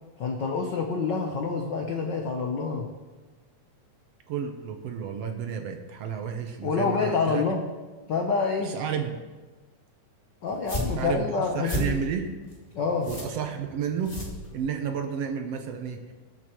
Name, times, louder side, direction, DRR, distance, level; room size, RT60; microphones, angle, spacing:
voice 1, 0.2-2.9 6.6-7.6 8.1-8.7 10.4-12.0 12.7-13.1, left 4 dB, 75° left, 2 dB, 1.0 m, -27 dB
voice 2, 4.3-7.4 8.6-9.2 11.0-12.3 13.1-14.2 14.5-16.0, right 7 dB, 70° right, 5 dB, 1.7 m, -31 dB
sound 1, 10.5-15.0, left 2 dB, 20° left, 1.9 m, -34 dB
21.5 x 8.3 x 3.1 m, 1.3 s
omnidirectional pair, 3.3 m